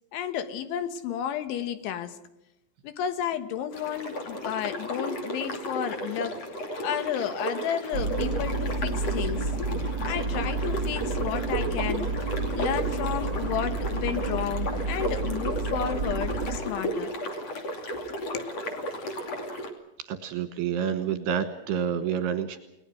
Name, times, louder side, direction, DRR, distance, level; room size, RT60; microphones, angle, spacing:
voice 1, 0.1-2.2 2.8-6.4 6.8-9.5 10.0-12.1 12.5-17.1 18.3-18.5, left 9 dB, 70° left, 11 dB, 3.5 m, -32 dB
sound 1, 3.7-19.7, equal, 40° left, 3.0 m, -34 dB
sound 2, 7.9-16.6, right 3 dB, 30° right, 2.7 m, -30 dB
voice 2, 20.0-22.6, right 8 dB, 65° right, 9 dB, 2.8 m, -28 dB
29.5 x 19.0 x 6.4 m, 0.90 s
omnidirectional pair, 6.0 m